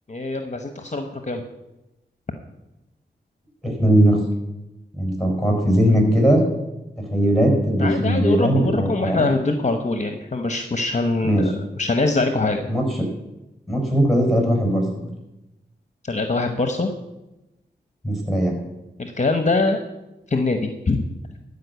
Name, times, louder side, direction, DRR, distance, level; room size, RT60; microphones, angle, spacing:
voice 1, 0.1-1.4 7.8-12.7 16.1-16.9 19.0-19.8 20.3-21.0, left 3 dB, 40° left, 6 dB, 1.0 m, -23 dB
voice 2, 3.6-4.2 5.0-6.4 7.1-9.2 11.2-11.4 12.7-13.0 13.7-15.0 18.0-18.5, equal, ahead, 1 dB, 5.0 m, -19 dB
12.5 x 5.3 x 8.0 m, 0.98 s
cardioid pair, 50°, 19 cm